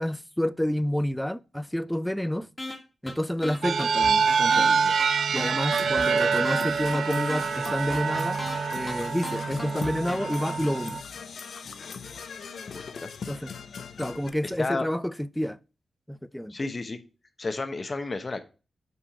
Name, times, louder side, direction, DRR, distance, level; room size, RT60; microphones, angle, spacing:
voice 1, 0.0-2.5 3.0-5.0 5.3-8.4 8.7-11.0 13.3-13.5 14.0-15.6 16.1-16.6, equal, 5° left, 0.4 m, -29 dB
sound 1, 2.6-2.8 3.1-3.2 3.4-4.7 5.0-5.1 5.4-6.6 6.9-7.0 7.3-8.6 8.9-9.0 9.2-10.2, left 2 dB, 20° left, 1.7 m, -36 dB
sound 2, 3.6-11.0, right 6 dB, 80° right, 0.4 m, -26 dB
Percussion / Brass instrument, 5.8-14.3, left 6 dB, 75° left, 0.6 m, -40 dB
voice 2, 12.7-13.1 14.6-14.9 16.5-17.0 17.4-18.4, left 3 dB, 40° left, 1.0 m, -32 dB
5.7 x 4.5 x 5.6 m
cardioid pair, 75°, 0 cm